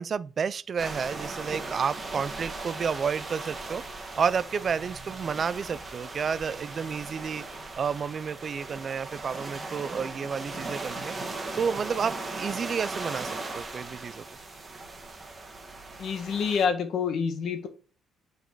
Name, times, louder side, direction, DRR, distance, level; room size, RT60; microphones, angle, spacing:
voice 1, 0.0-3.8 4.2-7.4 7.8-11.2 11.5-14.2, right 6 dB, 35° right, 0.3 m, -30 dB
the sea, 0.8-16.7, right 3 dB, 20° right, 1.6 m, -38 dB
voice 2, 16.0-17.7, left 6 dB, 55° left, 1.3 m, -27 dB
8.1 x 4.0 x 4.6 m
cardioid pair, 155°, 0 cm